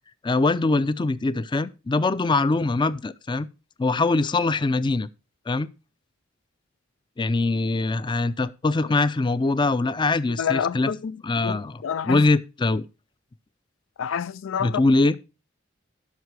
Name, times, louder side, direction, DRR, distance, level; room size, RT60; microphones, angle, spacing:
voice 1, 0.2-3.5 3.8-5.1 5.5-5.7 7.2-10.9 11.2-12.9 14.6-15.1, left 3 dB, 25° left, 0.4 m, -23 dB
voice 2, 10.4-12.2 14.0-14.8, left 7 dB, 90° left, 0.4 m, -28 dB
12.5 x 5.8 x 4.6 m
head